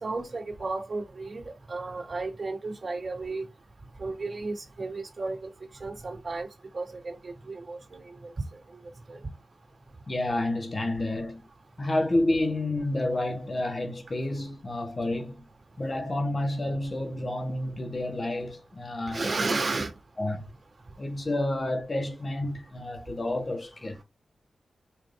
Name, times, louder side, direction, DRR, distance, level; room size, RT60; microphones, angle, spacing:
voice 1, 0.0-3.5 4.0-5.4 5.8-6.5 6.7-8.0 9.1-9.2 19.1-19.9, right 3 dB, 45° right, 1.9 m, -33 dB
voice 2, 10.1-11.4 11.8-15.5 15.8-19.5 20.2-20.5 21.0-24.0, left 1 dB, 35° left, 1.1 m, -30 dB
5.7 x 2.7 x 3.5 m
wide cardioid pair, 95°, 0 cm